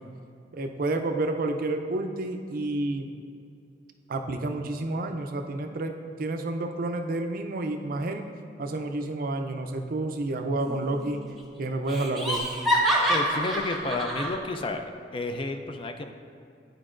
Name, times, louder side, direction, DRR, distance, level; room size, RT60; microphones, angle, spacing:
voice 1, 0.5-3.1 4.1-8.3 8.6-11.2 11.6-12.5, right 2 dB, 55° right, 5 dB, 0.5 m, -30 dB
Laughter, 10.6-11.1 11.4-11.5 11.9-14.4, equal, ahead, 0.8 m, -27 dB
voice 2, 13.1-14.9 15.1-16.1, left 2 dB, 30° left, 6 dB, 0.3 m, -31 dB
11.0 x 4.6 x 2.5 m, 2.4 s
head